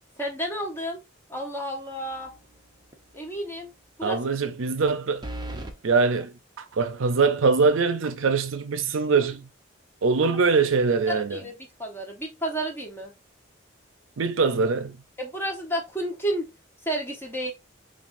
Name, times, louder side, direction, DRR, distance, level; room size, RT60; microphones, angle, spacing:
voice 1, 0.2-1.0 1.3-2.3 3.1-3.7 4.0-4.4 11.1-11.5 11.8-13.1 15.2-16.5 16.8-17.5, right 1 dB, 10° left, 0.9 m, -31 dB
sound 1, 2.1-2.6 2.9-3.0 5.2-5.8, right 1 dB, 20° right, 0.5 m, -36 dB
voice 2, 4.0-5.2 5.8-9.5 10.0-11.4 14.2-15.0, right 4 dB, 80° right, 0.5 m, -23 dB
5.9 x 2.4 x 2.5 m
head